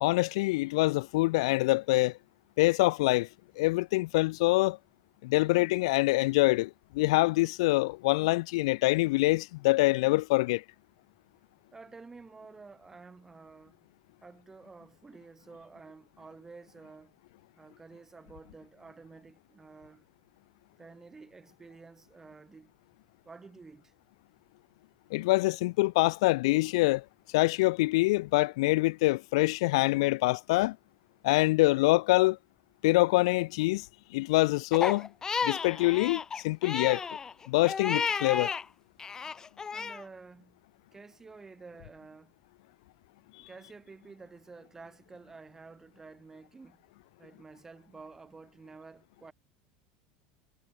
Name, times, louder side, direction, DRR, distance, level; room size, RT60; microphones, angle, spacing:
voice 1, 0.0-2.1 2.6-3.3 3.6-4.8 5.2-10.6 25.1-27.0 27.3-30.8 31.2-32.4 32.8-33.9 34.1-35.1 35.4-37.0 37.5-38.5, left 21 dB, 80° left, 1.2 m, -25 dB
voice 2, 11.7-13.8 14.2-17.1 17.6-20.0 20.8-22.7 23.2-23.9 39.7-40.6 40.9-42.3 43.4-46.8 47.2-49.3, right 4 dB, 15° right, 5.4 m, -51 dB
Crying sobbing, 34.7-38.6 39.0-40.0, left 5 dB, 20° left, 2.2 m, -33 dB
supercardioid pair, 135°, 3 cm